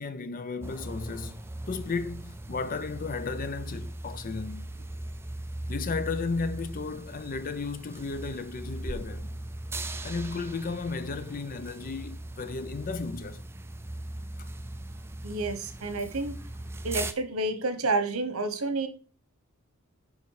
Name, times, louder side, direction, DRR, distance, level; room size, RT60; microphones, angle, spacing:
voice 1, 0.0-4.9 5.7-9.4 10.0-13.4 14.4-14.5, left 4 dB, 40° left, 0.5 m, -34 dB
sound 1, 0.6-17.1, right 1 dB, 10° right, 0.4 m, -39 dB
voice 2, 15.2-16.3 16.8-18.9, right 2 dB, 75° right, 1.1 m, -29 dB
9.6 x 3.6 x 4.6 m
head